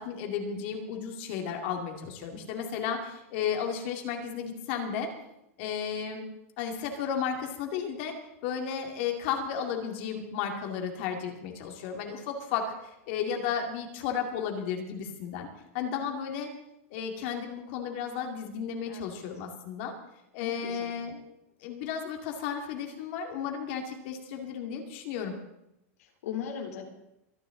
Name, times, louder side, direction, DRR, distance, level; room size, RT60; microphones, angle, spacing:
voice 1, 0.0-5.1 5.6-6.3 6.6-8.1 8.4-15.5 15.7-16.5 16.9-19.9 20.3-21.2 21.6-25.3, left 7 dB, 50° left, 3 dB, 2.4 m, -33 dB
voice 2, 20.4-20.9 26.0-26.8, left 8 dB, 85° left, 2 dB, 3.3 m, -38 dB
23.0 x 11.0 x 3.9 m, 0.84 s
supercardioid pair, 165°, 8 cm